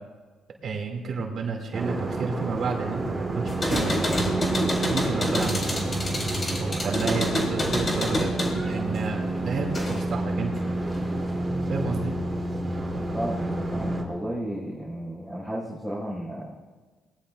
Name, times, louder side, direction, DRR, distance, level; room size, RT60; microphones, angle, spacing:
voice 1, 0.6-4.5 4.9-5.8 6.6-8.3 8.6-10.5 11.7-12.1, right 4 dB, 60° right, 1 dB, 2.6 m, -31 dB
sound 1, 1.7-14.0, right 2 dB, 20° right, 3.3 m, -29 dB
sound 2, 3.5-10.2 10.6-11.4, left 1 dB, 30° left, 3.6 m, -28 dB
voice 2, 13.1-16.5, equal, 10° left, -6 dB, 5.6 m, -33 dB
22.0 x 19.0 x 2.6 m, 1.4 s
cardioid pair, 90°, 0 cm